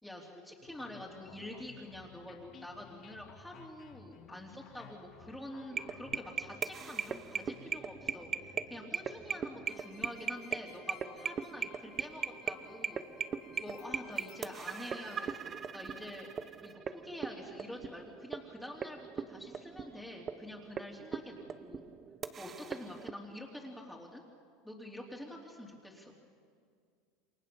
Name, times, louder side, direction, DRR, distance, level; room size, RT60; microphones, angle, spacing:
voice 1, 0.0-13.1 13.6-16.3 16.6-21.8 22.4-24.2 24.6-26.1, left 1 dB, 5° left, -2 dB, 3.3 m, -47 dB
sound 1, 0.6-15.3, left 7 dB, 40° left, 3.2 m, -57 dB
sound 2, 5.7-23.1, right 6 dB, 30° right, 0.9 m, -40 dB
28.5 x 23.5 x 7.0 m, 2.1 s
supercardioid pair, 125°, 0 cm